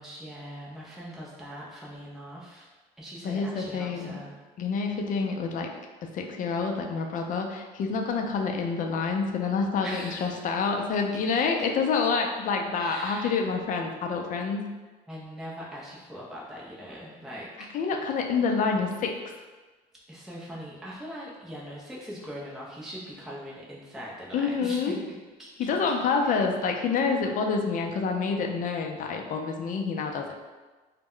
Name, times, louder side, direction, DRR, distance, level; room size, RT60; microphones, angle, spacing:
voice 1, 0.0-2.7 3.0-4.4 9.8-10.5 12.8-13.4 15.1-18.0 20.1-25.5 26.2-26.4, equal, ahead, -6 dB, 0.5 m, -41 dB
voice 2, 3.2-4.2 4.6-5.8 6.1-14.7 17.7-19.1 24.3-24.9 25.6-30.3, left 5 dB, 50° left, 2 dB, 0.4 m, -27 dB
2.1 x 2.1 x 3.6 m, 1.3 s
cardioid pair, 110°, 17 cm